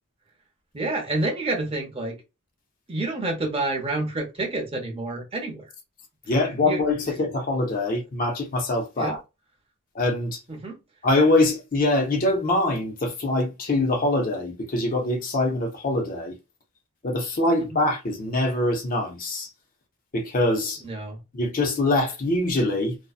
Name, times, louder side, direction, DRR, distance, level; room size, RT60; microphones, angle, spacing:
voice 1, 0.7-2.1 2.9-5.6 6.6-6.8 9.0-9.2 10.6-10.8 20.8-21.2, right 2 dB, 25° right, 0.7 m, -28 dB
voice 2, 6.3-9.2 9.9-10.4 11.0-16.3 17.0-19.5 20.1-20.8 21.3-23.0, left 2 dB, 40° left, 0.6 m, -24 dB
2.5 x 2.1 x 2.4 m
head